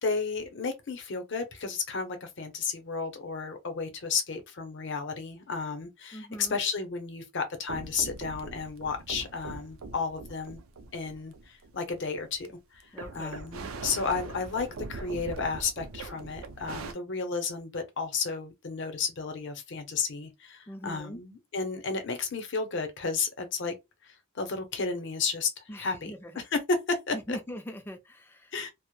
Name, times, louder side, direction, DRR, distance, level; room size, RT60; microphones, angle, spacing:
voice 1, 0.0-10.6 10.9-12.5 12.7-12.8 13.1-23.7 24.0-26.1 26.5-26.6 26.9-27.4 28.5-28.7, left 5 dB, 60° left, 0.6 m, -33 dB
voice 2, 6.1-6.6 12.9-13.4 20.7-21.2 25.7-26.4 27.1-28.6, equal, 10° left, 0.3 m, -41 dB
sound 1, 7.7-12.5 12.8-16.9, right 3 dB, 75° right, 0.4 m, -42 dB
2.1 x 2.0 x 3.0 m
head